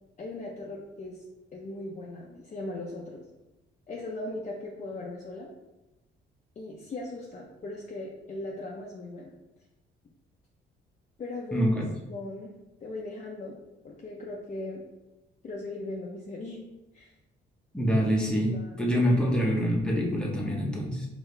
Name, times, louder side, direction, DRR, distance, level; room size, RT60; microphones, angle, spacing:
voice 1, 0.2-1.2 1.5-3.2 3.9-5.5 6.6-9.3 11.2-11.8 12.1-12.5 12.8-13.6 13.8-14.8 15.4-16.7 16.9-17.1 17.9-18.0 18.5-19.3 20.5-20.7, left 2 dB, 35° left, -3 dB, 0.7 m, -38 dB
voice 2, 11.5-11.9 17.7-21.1, equal, 5° left, -2 dB, 1.1 m, -26 dB
4.5 x 2.9 x 3.4 m, 1.0 s
cardioid pair, 90°, 20 cm